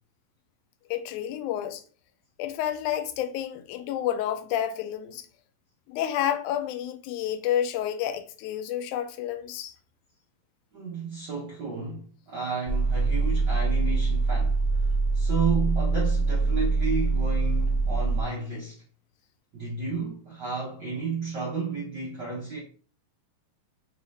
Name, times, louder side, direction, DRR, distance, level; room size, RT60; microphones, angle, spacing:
voice 1, 0.9-1.8 2.4-5.3 5.9-9.7, left 10 dB, 90° left, 2.0 m, -30 dB
voice 2, 10.7-18.8 19.5-22.6, right 4 dB, 70° right, 1.0 m, -32 dB
sound 1, 12.7-18.2, right 3 dB, 30° left, 0.8 m, -24 dB
4.5 x 2.8 x 3.1 m
omnidirectional pair, 3.4 m